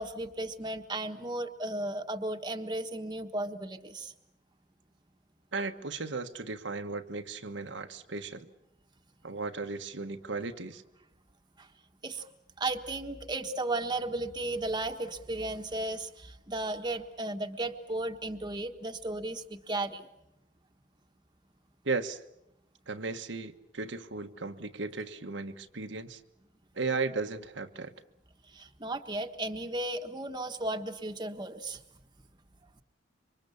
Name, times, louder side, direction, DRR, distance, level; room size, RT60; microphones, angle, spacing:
voice 1, 0.0-4.1 12.0-12.2 12.6-20.1 28.5-31.8, right 2 dB, 25° right, 5 dB, 1.4 m, -35 dB
voice 2, 5.5-8.5 9.2-10.8 21.8-22.2 22.9-26.2 26.7-27.9, right 3 dB, 85° right, 5 dB, 1.4 m, -35 dB
27.5 x 25.0 x 7.1 m, 0.84 s
head